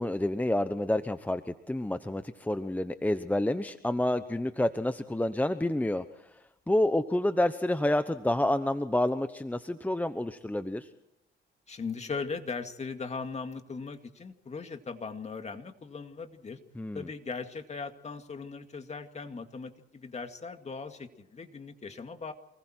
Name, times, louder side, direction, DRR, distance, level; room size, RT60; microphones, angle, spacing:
voice 1, 0.0-10.9 16.8-17.1, left 1 dB, 10° left, 10 dB, 1.0 m, -29 dB
voice 2, 11.7-16.6 16.9-22.3, left 4 dB, 35° left, 7 dB, 2.3 m, -39 dB
28.0 x 20.5 x 4.5 m, 0.86 s
cardioid pair, 90°, 20 cm